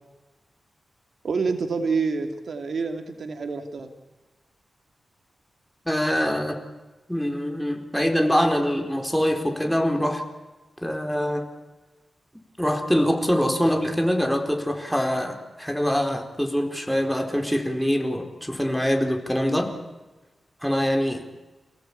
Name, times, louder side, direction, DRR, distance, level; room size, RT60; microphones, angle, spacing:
voice 1, 1.2-4.0, right 4 dB, 70° right, 6 dB, 2.7 m, -27 dB
voice 2, 5.9-6.6 7.1-10.2 10.8-11.5 12.6-19.7 20.6-21.2, equal, ahead, 4 dB, 4.3 m, -24 dB
28.5 x 17.5 x 8.7 m, 1.2 s
cardioid pair, 75°, 0 cm